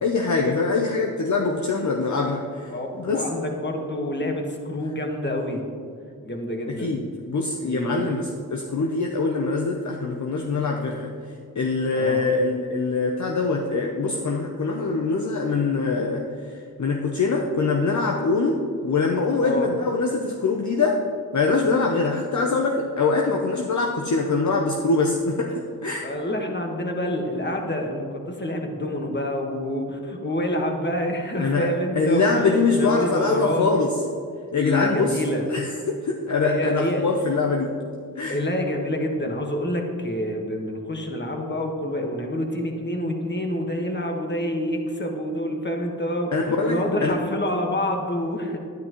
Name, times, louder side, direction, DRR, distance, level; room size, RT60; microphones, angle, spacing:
voice 1, 0.0-2.7 3.0-3.2 6.7-11.1 11.6-21.0 21.3-26.1 31.4-31.7 32.0-33.9 34.5-35.2 35.5-37.7 38.2-38.4 46.3-47.1, left 3 dB, 50° left, 1 dB, 0.8 m, -23 dB
voice 2, 2.7-5.6 6.2-6.9 7.6-8.2 11.9-12.2 19.4-19.7 26.0-33.7 34.6-35.4 36.4-37.0 38.3-48.6, left 1 dB, 30° left, 2 dB, 1.6 m, -27 dB
10.5 x 10.0 x 3.1 m, 2.2 s
cardioid pair, 50°, 36 cm